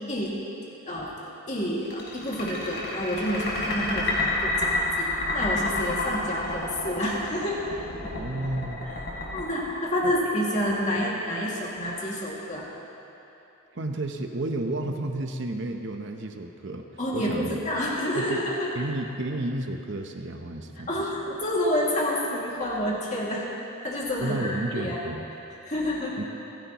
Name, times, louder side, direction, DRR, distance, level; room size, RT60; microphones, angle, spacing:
voice 1, 1.5-7.6 9.3-12.6 17.0-18.7 20.9-23.5 23.8-25.0 25.6-26.2, equal, 35° left, -5 dB, 2.3 m, -28 dB
sound 1, 1.8-10.5, left 2 dB, 50° left, 3.6 m, -29 dB
voice 2, 8.0-8.8 10.0-10.1 13.7-16.9 17.1-17.6 18.1-18.4 18.7-20.9 24.2-25.3 26.2-26.3, right 2 dB, 55° right, 4 dB, 0.8 m, -31 dB
30.0 x 11.0 x 3.0 m, 2.9 s
head